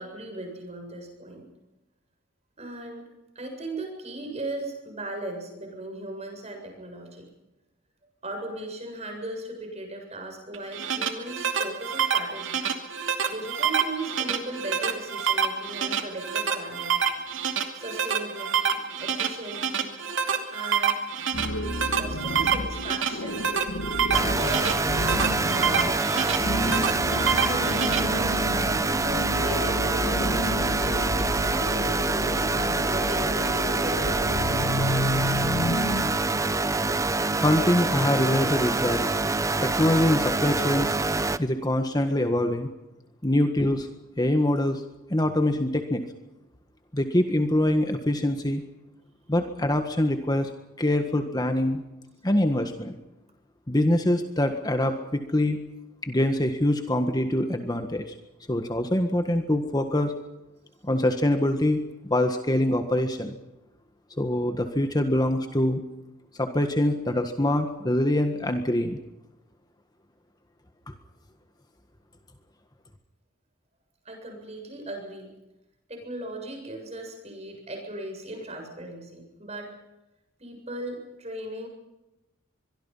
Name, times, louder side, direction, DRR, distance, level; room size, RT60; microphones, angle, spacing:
voice 1, 0.0-1.5 2.6-3.1 3.3-7.3 8.2-12.6 13.3-17.0 17.7-20.0 20.5-21.0 21.9-23.4 24.4-26.3 27.4-34.7 74.0-75.3 75.9-79.7 80.4-81.7, right 1 dB, 35° right, 3 dB, 7.5 m, -37 dB
sound 1, 10.5-28.0, right 7 dB, 75° right, 2.6 m, -27 dB
sound 2, 21.3-36.9, left 1 dB, 90° left, 2.1 m, -31 dB
sound 3, 24.1-41.4, right 3 dB, 15° right, 0.8 m, -26 dB
voice 2, 37.4-39.0 39.6-41.0 41.4-42.7 43.2-43.9 44.2-44.8 45.1-46.0 46.9-48.6 49.3-50.5 50.8-51.8 52.2-52.9 53.7-55.6 56.0-58.1 58.5-60.1 60.8-63.4 64.2-65.8 66.4-69.0 70.9-71.0, left 1 dB, 20° left, 6 dB, 1.6 m, -24 dB
24.5 x 23.0 x 5.7 m, 0.97 s
head